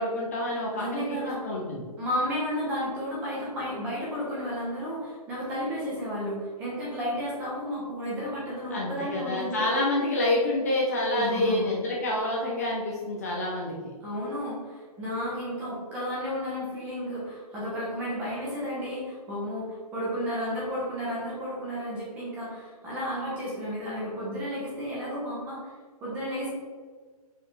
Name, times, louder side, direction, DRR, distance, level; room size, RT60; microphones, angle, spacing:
voice 1, 0.0-1.2 1.4-1.9 8.7-13.9, left 1 dB, 25° left, -4 dB, 0.7 m, -28 dB
voice 2, 0.7-1.4 2.0-9.6 11.1-11.7 14.0-25.7 26.0-26.5, equal, 10° right, -7 dB, 1.0 m, -32 dB
6.7 x 4.8 x 3.3 m, 1.6 s
hypercardioid pair, 180°, 20 cm